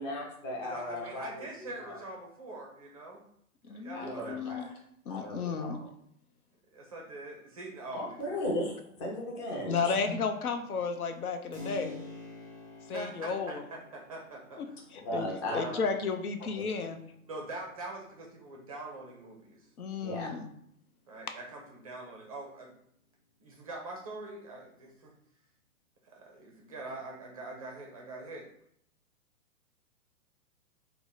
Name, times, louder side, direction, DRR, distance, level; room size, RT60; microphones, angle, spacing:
voice 1, 0.0-1.4 1.8-1.9 3.9-4.7 5.1-5.7 7.9-9.9 15.0-15.6 16.6-16.7 20.0-20.3, left 1 dB, 20° left, 0 dB, 0.6 m, -36 dB
voice 2, 0.6-3.2 3.6-4.8 6.7-8.5 12.9-14.8 15.2-15.9 17.3-19.7 21.1-22.7 23.4-25.1 26.0-28.5, right 2 dB, 25° right, 0 dB, 0.4 m, -43 dB
voice 3, 3.6-4.7 5.1-5.8 9.7-12.0 12.9-13.6 14.9-17.0 19.8-20.5, left 5 dB, 80° left, 6 dB, 0.6 m, -33 dB
Keyboard (musical), 11.5-20.1, left 3 dB, 5° left, 0.9 m, -50 dB
2.7 x 2.0 x 3.9 m, 0.70 s
figure-of-eight pair, 115°, 43 cm